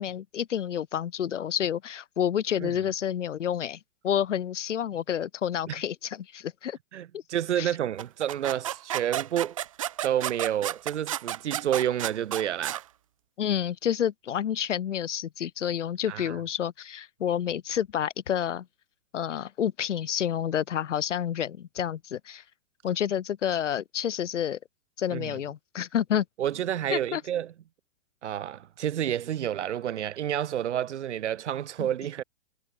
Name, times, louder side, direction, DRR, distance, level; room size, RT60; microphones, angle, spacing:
voice 1, 0.0-6.8 7.1-7.2 7.6-7.7 13.4-18.7 19.1-22.4 22.8-24.6 25.0-26.2 26.9-27.2 31.8-31.9, left 9 dB, 75° left, 2.3 m, -29 dB
voice 2, 6.9-9.6 10.0-12.8 16.1-16.4 25.1-25.4 26.4-27.5 28.2-32.2, right 10 dB, 70° right, 1.6 m, -29 dB
sound 1, 8.0-12.8, right 12 dB, 30° right, 0.4 m, -32 dB
hypercardioid pair, 160°, 36 cm